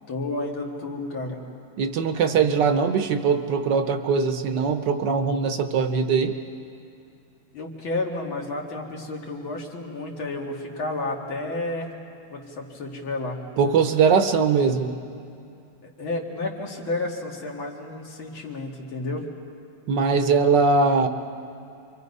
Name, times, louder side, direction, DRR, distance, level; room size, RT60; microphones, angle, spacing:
voice 1, 0.1-1.4 2.2-2.4 7.5-11.9 12.3-13.4 15.8-19.2, left 2 dB, 85° left, 0 dB, 3.0 m, -31 dB
voice 2, 1.8-6.3 13.6-14.9 19.9-21.1, right 5 dB, 65° right, 7 dB, 1.5 m, -21 dB
29.0 x 24.0 x 5.4 m, 2.5 s
omnidirectional pair, 2.1 m